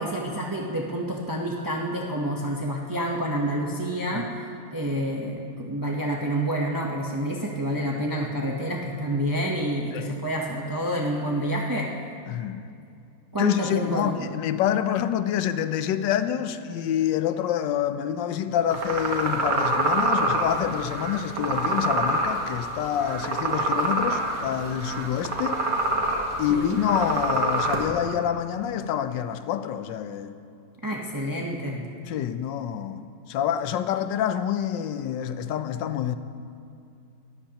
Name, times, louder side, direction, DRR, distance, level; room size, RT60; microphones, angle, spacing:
voice 1, 0.0-4.4 4.7-11.9 13.3-14.3 26.5-26.8 30.8-31.8, right 1 dB, 35° right, -1 dB, 0.3 m, -28 dB
voice 2, 12.3-12.7 13.4-25.6 26.4-30.3 32.1-33.0 33.3-36.2, left 10 dB, 80° left, 11 dB, 1.3 m, -27 dB
sound 1, 18.7-27.8, right 2 dB, 65° right, 1.9 m, -26 dB
19.0 x 13.5 x 2.9 m, 2.5 s
omnidirectional pair, 2.0 m